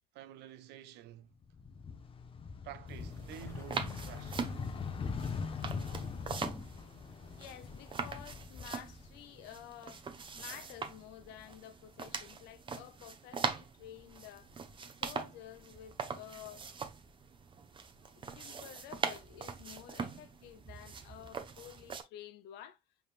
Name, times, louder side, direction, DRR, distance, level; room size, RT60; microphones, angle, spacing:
voice 1, 0.1-1.3 2.6-4.5, right 12 dB, 85° right, 0.6 m, -50 dB
sound 1, 1.4-9.6 9.9-11.1, left 5 dB, 30° left, 0.7 m, -42 dB
sound 2, 2.9-22.0, right 5 dB, 30° right, 0.7 m, -42 dB
sound 3, 3.0-8.2, left 2 dB, 15° left, 1.2 m, -54 dB
voice 2, 7.4-14.5 15.0-16.7 18.1-22.8, left 11 dB, 90° left, 0.6 m, -51 dB
5.4 x 3.5 x 2.4 m
cardioid pair, 110°, 17 cm